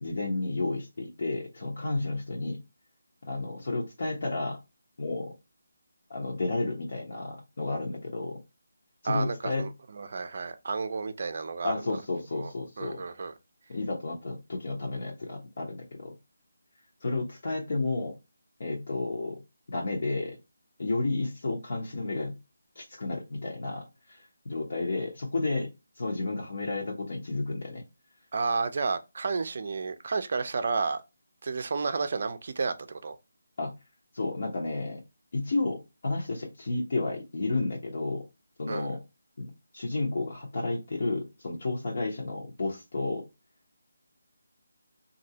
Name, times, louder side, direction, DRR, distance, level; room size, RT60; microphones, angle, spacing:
voice 1, 0.0-2.6 3.3-4.6 5.0-5.3 6.1-8.4 9.0-9.6 11.6-13.0 13.7-16.1 17.0-18.2 18.6-19.4 19.7-20.4 20.8-22.3 22.8-25.7 26.0-27.8 33.6-33.7 34.1-35.0 35.3-38.2 38.6-39.0 39.4-43.2, left 2 dB, 55° left, 0.9 m, -32 dB
voice 2, 9.0-11.7 12.4-13.3 28.3-31.0 31.4-33.2 38.7-38.9, right 4 dB, 45° right, 0.4 m, -31 dB
3.2 x 2.6 x 2.7 m
figure-of-eight pair, 170°, 0 cm